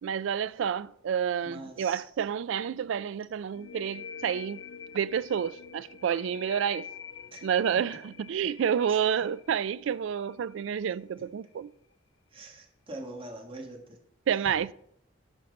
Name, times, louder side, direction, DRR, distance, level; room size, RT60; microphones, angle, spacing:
voice 1, 0.0-4.6 4.9-6.9 7.4-11.7 14.3-14.7, right 8 dB, 65° right, 0.3 m, -29 dB
voice 2, 1.4-2.0 7.3-7.4 8.9-9.0 12.3-14.0, right 2 dB, 25° right, 1.5 m, -43 dB
sound 1, 3.5-11.0, left 7 dB, 75° left, 0.6 m, -46 dB
11.5 x 5.8 x 5.2 m
head